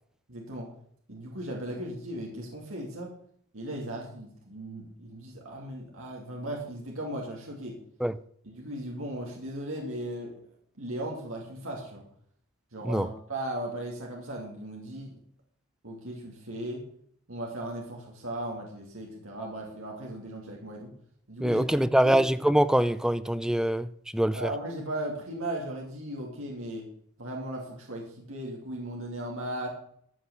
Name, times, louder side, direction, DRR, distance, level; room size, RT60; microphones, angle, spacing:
voice 1, 0.3-0.7 1.1-3.1 3.5-7.8 8.4-10.3 10.8-12.0 12.7-15.1 15.8-16.8 17.3-20.9 21.3-22.2 24.3-26.9 27.2-29.7, right 1 dB, 65° right, 2.8 m, -37 dB
voice 2, 21.4-24.5, right 1 dB, 5° right, 0.4 m, -24 dB
14.0 x 6.1 x 7.0 m
head